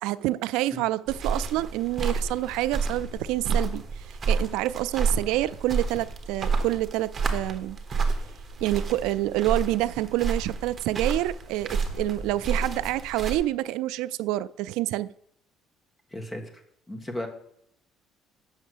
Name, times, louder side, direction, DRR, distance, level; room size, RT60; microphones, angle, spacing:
voice 1, 0.0-3.8 4.3-7.8 8.6-15.1, right 16 dB, 90° right, 0.3 m, -27 dB
sound 1, 1.1-13.4, right 4 dB, 30° right, 1.2 m, -30 dB
voice 2, 16.1-16.6 16.9-17.3, left 1 dB, 15° left, 1.5 m, -35 dB
7.2 x 6.4 x 7.7 m
cardioid pair, 135°, 0 cm